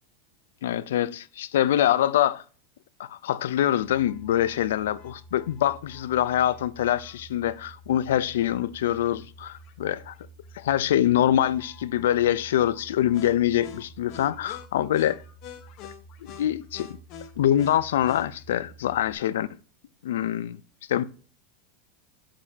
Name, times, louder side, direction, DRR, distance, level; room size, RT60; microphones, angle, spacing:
voice 1, 0.6-2.4 3.0-10.1 10.5-15.2 16.3-17.0 17.4-19.5 20.0-20.6 20.9-21.0, left 11 dB, 85° left, 0.6 m, -24 dB
sound 1, 3.8-19.1, left 2 dB, 40° left, 1.2 m, -47 dB
8.5 x 7.6 x 2.9 m
supercardioid pair, 150°, 0 cm